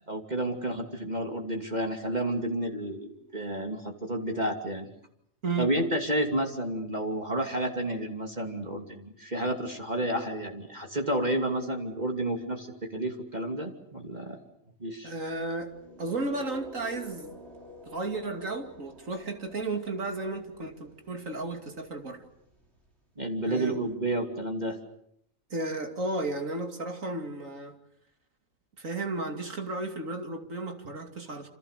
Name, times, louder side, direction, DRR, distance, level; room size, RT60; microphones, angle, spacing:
voice 1, 0.0-4.9 5.6-14.4 14.8-15.1 23.2-24.8, right 1 dB, 30° right, 3 dB, 2.8 m, -31 dB
voice 2, 15.0-15.7 16.0-17.3 17.8-22.2 23.5-23.8 25.5-27.7 28.8-31.5, right 2 dB, 70° right, 5 dB, 3.1 m, -33 dB
sound 1, 15.2-23.2, left 1 dB, 50° right, 5.2 m, -50 dB
28.0 x 27.5 x 6.7 m, 0.72 s
omnidirectional pair, 1.4 m